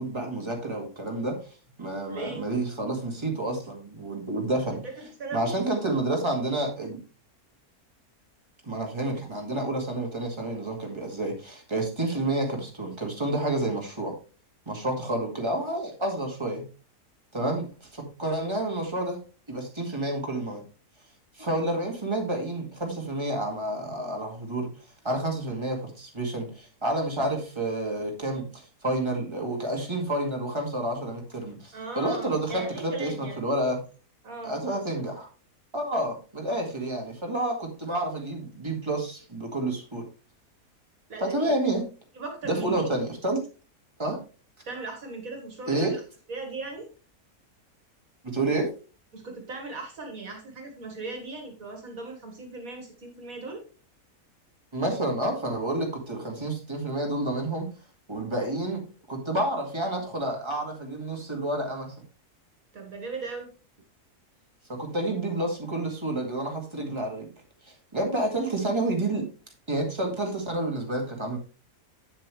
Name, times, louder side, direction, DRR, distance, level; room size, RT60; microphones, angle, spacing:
voice 1, 0.0-1.4 1.8-4.8 5.3-7.0 8.6-14.1 14.7-16.6 17.3-19.2 19.5-20.6 21.4-24.7 25.0-33.8 34.4-35.3 35.7-40.0 41.2-41.8 42.4-43.4 44.0-44.2 45.7-46.0 48.2-48.7 54.7-57.7 58.1-58.8 59.1-61.9 64.7-67.3 67.6-69.2 69.7-71.4, right 1 dB, 20° right, 1 dB, 2.1 m, -29 dB
voice 2, 2.1-2.4 5.0-5.5 31.7-33.4 34.2-34.6 41.1-41.5 42.1-42.9 44.7-45.9 46.3-46.9 49.1-53.6 62.7-63.5, right 3 dB, 65° right, 2 dB, 2.1 m, -38 dB
8.4 x 7.4 x 3.2 m, 0.35 s
omnidirectional pair, 1.6 m